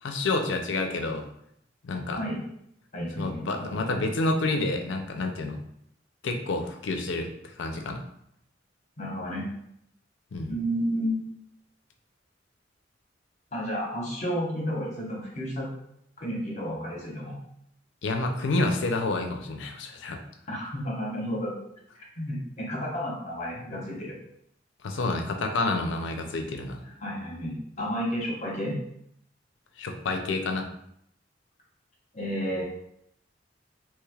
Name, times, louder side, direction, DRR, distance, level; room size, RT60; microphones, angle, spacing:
voice 1, 0.0-1.2 1.8-2.2 3.2-5.6 6.2-7.3 7.6-8.0 10.3-10.5 18.0-20.2 24.8-26.8 29.8-30.7, left 2 dB, 80° left, 5 dB, 0.5 m, -28 dB
voice 2, 2.1-2.4 2.9-3.8 9.0-9.5 10.5-11.2 13.5-15.7 16.2-17.4 20.5-21.5 22.2-24.2 26.8-28.8 32.1-32.6, equal, 40° left, -3 dB, 1.0 m, -31 dB
3.2 x 3.1 x 2.3 m, 0.73 s
head